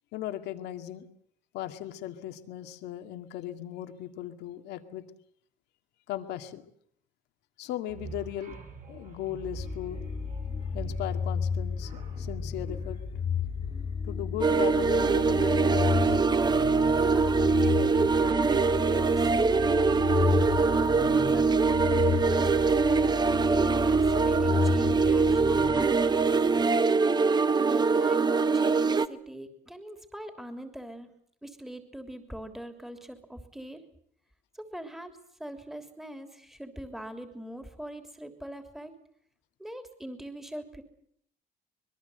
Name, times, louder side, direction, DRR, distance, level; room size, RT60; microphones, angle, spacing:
voice 1, 0.1-1.1 1.5-5.0 6.1-6.7 7.6-8.6 8.9-10.0 10.7-13.0 14.0-16.3, left 12 dB, 85° left, 8 dB, 2.2 m, -37 dB
sound 1, 7.9-14.1, right 5 dB, 45° right, 7.1 m, -45 dB
sound 2, 9.5-26.4, left 6 dB, 35° left, 1.5 m, -32 dB
sound 3, 14.4-29.1, right 4 dB, 25° right, 1.1 m, -23 dB
voice 2, 17.0-19.8 20.5-23.1 23.4-26.3 27.7-31.1 31.4-33.8 34.5-38.9 39.6-40.8, right 1 dB, ahead, 7 dB, 3.2 m, -43 dB
25.0 x 22.0 x 8.0 m, 0.68 s
cardioid pair, 110°, 17 cm